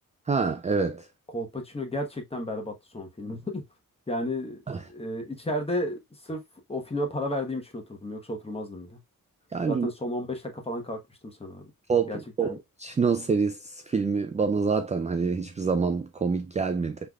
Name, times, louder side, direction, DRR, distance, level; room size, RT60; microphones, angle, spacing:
voice 1, 0.3-1.1 4.7-4.8 9.5-9.9 11.9-12.1 12.4-17.0, right 5 dB, 20° right, 0.3 m, -26 dB
voice 2, 1.3-3.6 4.1-6.4 6.7-9.0 9.7-11.7 12.1-12.6, left 1 dB, 15° left, 1.2 m, -33 dB
5.9 x 3.3 x 2.3 m
wide cardioid pair, 150°, 35 cm